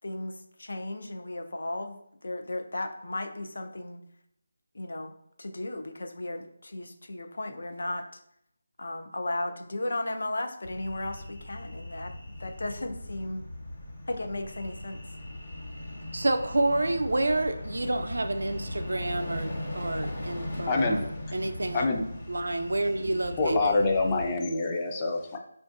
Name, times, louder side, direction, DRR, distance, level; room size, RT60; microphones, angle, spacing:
voice 1, 0.0-4.0 4.7-5.1 5.4-8.2 8.8-12.1 12.4-13.4 14.1-15.0, left 1 dB, 70° left, 5 dB, 0.5 m, -35 dB
sound 1, 10.6-24.3, left 1 dB, 55° left, 1.3 m, -39 dB
voice 2, 16.1-21.9 22.3-23.7, right 2 dB, 85° right, 8 dB, 0.4 m, -29 dB
voice 3, 20.7-21.0 21.7-22.0 23.4-25.4, left 3 dB, 20° left, 1 dB, 0.4 m, -26 dB
5.1 x 2.5 x 2.4 m, 0.75 s
figure-of-eight pair, 170°, 0 cm